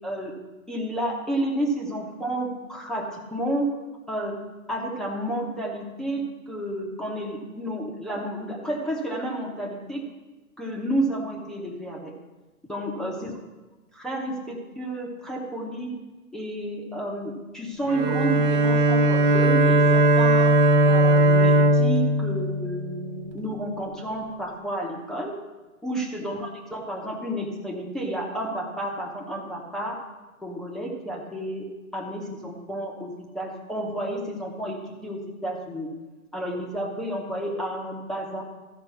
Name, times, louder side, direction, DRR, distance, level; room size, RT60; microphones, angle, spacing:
voice 1, 0.0-0.4 0.7-3.7 4.1-4.4 4.7-10.0 10.6-12.1 12.7-13.3 13.9-16.0 16.3-20.5 20.8-25.4 25.8-30.0 30.4-31.7 31.9-35.9 36.3-38.4, right 1 dB, ahead, -3 dB, 0.8 m, -31 dB
Bowed string instrument, 17.9-23.3, right 1 dB, 20° right, 0.6 m, -19 dB
13.0 x 5.2 x 5.8 m, 1.2 s
hypercardioid pair, 130°, 43 cm